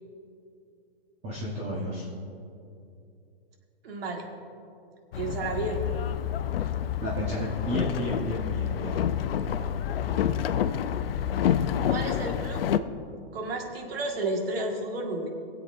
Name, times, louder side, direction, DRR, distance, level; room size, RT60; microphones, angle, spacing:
voice 1, 1.2-2.1 7.0-9.0, equal, 20° right, -5 dB, 1.1 m, -32 dB
voice 2, 3.8-4.3 5.1-5.8 11.8-12.6 13.3-15.3, right 2 dB, 65° right, 2 dB, 1.8 m, -32 dB
Boat Water vehicle, 5.1-12.8, left 9 dB, 65° left, 0.5 m, -28 dB
23.0 x 7.9 x 2.6 m, 2.6 s
hypercardioid pair, 160°, 32 cm